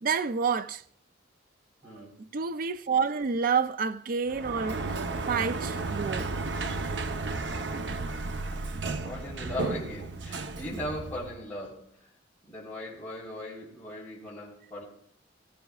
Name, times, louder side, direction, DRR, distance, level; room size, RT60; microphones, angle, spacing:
voice 1, 0.0-0.8 2.0-2.1 2.3-5.0 5.3-6.3, right 5 dB, 50° right, 0.5 m, -28 dB
voice 2, 1.8-2.2 9.0-12.1 12.4-14.8, left 1 dB, 10° left, 3.8 m, -38 dB
Sliding door, 4.3-11.4, right 3 dB, 75° right, 0.8 m, -33 dB
21.0 x 14.5 x 2.4 m
head